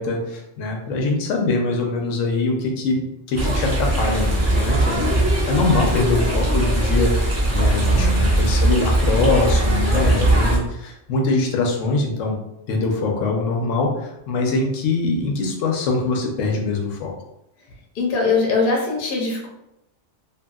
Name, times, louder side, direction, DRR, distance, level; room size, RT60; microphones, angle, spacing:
voice 1, 0.0-12.4 12.7-17.1, left 3 dB, 90° left, 1 dB, 1.0 m, -23 dB
sound 1, 3.3-10.6, right 1 dB, 20° right, 0.5 m, -19 dB
voice 2, 7.9-8.2 17.9-19.5, left 4 dB, 50° left, -2 dB, 0.8 m, -21 dB
2.8 x 2.7 x 2.3 m, 0.84 s
omnidirectional pair, 1.3 m